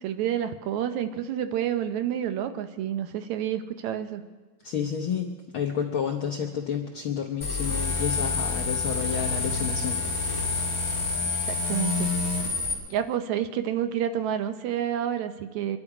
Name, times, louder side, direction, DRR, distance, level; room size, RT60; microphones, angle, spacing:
voice 1, 0.0-4.2 11.3-12.1 12.9-15.8, right 10 dB, 75° right, 9 dB, 2.0 m, -29 dB
voice 2, 4.6-10.1, left 8 dB, 70° left, 2 dB, 1.2 m, -30 dB
sound 1, 7.4-12.7, left 3 dB, 10° left, 2.0 m, -28 dB
24.5 x 11.5 x 4.9 m, 1.3 s
omnidirectional pair, 3.5 m